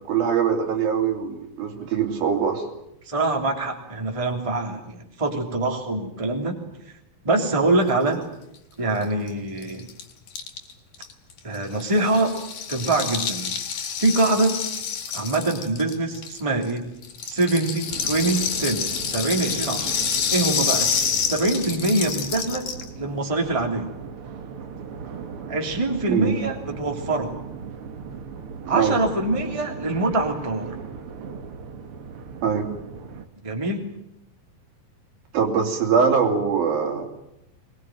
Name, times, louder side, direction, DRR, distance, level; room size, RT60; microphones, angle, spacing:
voice 1, 0.1-2.6 26.1-26.4 28.7-29.0 32.4-32.7 35.3-37.1, right 6 dB, 75° right, 3 dB, 4.8 m, -22 dB
voice 2, 3.0-6.6 7.2-8.2 8.8-9.9 11.4-12.4 12.7-13.6 14.0-14.6 15.1-16.9 17.3-20.0 20.3-23.9 25.5-27.4 28.7-30.8 33.4-33.8, right 2 dB, 10° right, 2 dB, 2.6 m, -24 dB
Rattle (instrument), 9.0-9.1 9.3-9.4 9.6-16.7 17.0-22.9, left 7 dB, 60° left, 3.6 m, -28 dB
sound 1, 17.9-33.3, right 6 dB, 50° right, 1.8 m, -38 dB
22.5 x 21.0 x 9.2 m, 0.82 s
omnidirectional pair, 4.2 m